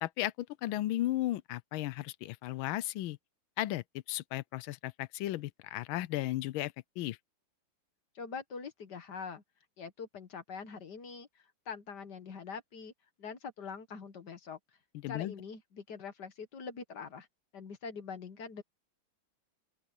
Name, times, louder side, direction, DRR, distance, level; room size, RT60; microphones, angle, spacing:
voice 1, 0.0-3.2 3.6-7.2 15.0-15.3, left 15 dB, 85° left, 1.4 m, -35 dB
voice 2, 8.2-9.4 9.8-12.9 13.2-14.6 15.1-17.3 17.5-18.6, left 5 dB, 60° left, 1.9 m, -44 dB
open air
omnidirectional pair, 2.2 m